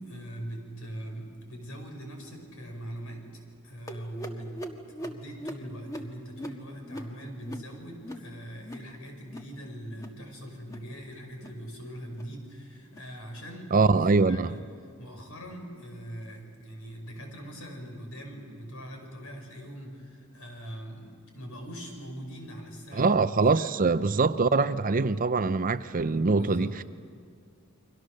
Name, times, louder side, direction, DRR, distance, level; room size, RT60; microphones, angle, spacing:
voice 1, 0.0-3.2 3.6-4.6 5.0-14.0 14.2-14.6 15.0-23.8 26.3-26.8, equal, 70° left, 5.5 m, -42 dB
sound 1, 3.9-8.9 9.2-9.6 9.8-10.2 10.5-10.9 11.3-11.6 12.0-12.4 12.8-13.1 13.6-13.9 14.5-14.7 15.3-15.5 16.2-16.3 17.0-17.1, equal, 15° left, 1.5 m, -42 dB
voice 2, 13.7-14.5 22.9-26.8, right 4 dB, 40° right, 0.6 m, -23 dB
30.0 x 23.5 x 6.6 m
head